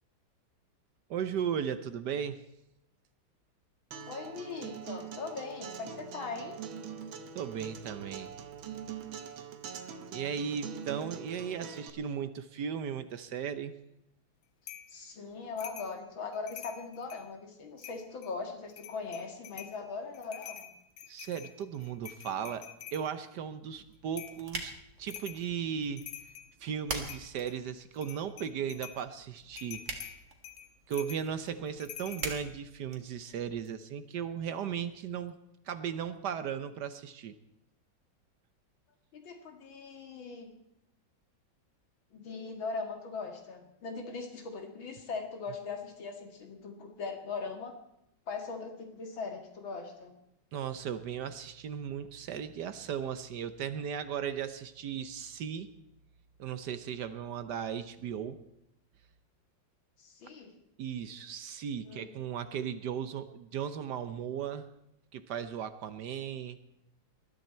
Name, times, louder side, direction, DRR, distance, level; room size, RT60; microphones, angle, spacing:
voice 1, 1.1-2.4 7.3-8.3 10.1-13.8 21.1-24.7 25.0-26.0 26.6-29.9 30.9-35.4 35.7-37.4 50.5-55.7 56.4-58.4 60.8-64.7 65.1-66.6, right 8 dB, 65° right, 12 dB, 1.3 m, -36 dB
Acoustic guitar, 3.9-11.9, right 7 dB, 80° right, 1.9 m, -43 dB
voice 2, 4.1-6.6 14.9-20.7 39.1-40.5 42.1-47.7 48.3-50.1 60.0-60.5 61.8-62.1, left 4 dB, 80° left, 4 dB, 2.9 m, -40 dB
sound 1, 14.7-14.9 15.6-15.9 16.3-17.3 17.8-18.3 18.7-19.8 20.1-23.1 24.2-24.4 25.1-25.4 25.8-26.5 27.0-27.6 27.9-29.0 29.6-32.3, left 10 dB, 60° left, 1.6 m, -47 dB
sound 2, 23.7-33.7, right 2 dB, 40° right, 2.1 m, -45 dB
20.5 x 12.5 x 4.4 m, 0.82 s
omnidirectional pair, 2.1 m